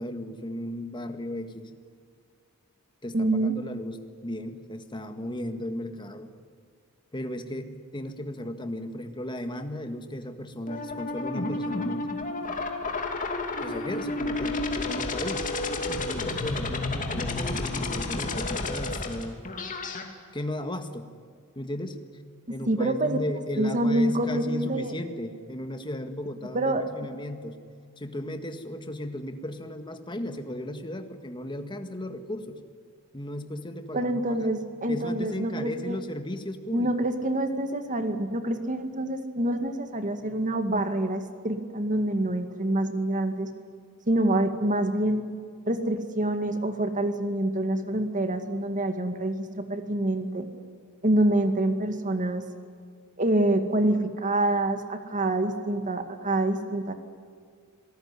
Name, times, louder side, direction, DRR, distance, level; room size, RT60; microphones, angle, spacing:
voice 1, 0.0-1.7 3.0-6.3 7.1-12.1 13.6-15.5 16.0-19.4 20.3-21.1 21.6-22.0 22.5-27.6 28.0-32.6 33.1-34.6 34.9-36.9, left 1 dB, 20° left, 7 dB, 1.8 m, -35 dB
voice 2, 3.1-3.5 22.7-23.2 23.6-24.9 26.5-26.9 33.9-36.0 36.7-43.5 44.1-45.2 45.6-50.5 51.0-52.4 53.2-56.9, right 1 dB, 35° right, 7 dB, 2.1 m, -26 dB
sound 1, 10.7-20.0, left 2 dB, 35° left, 2.8 m, -31 dB
27.0 x 19.0 x 9.8 m, 2.1 s
head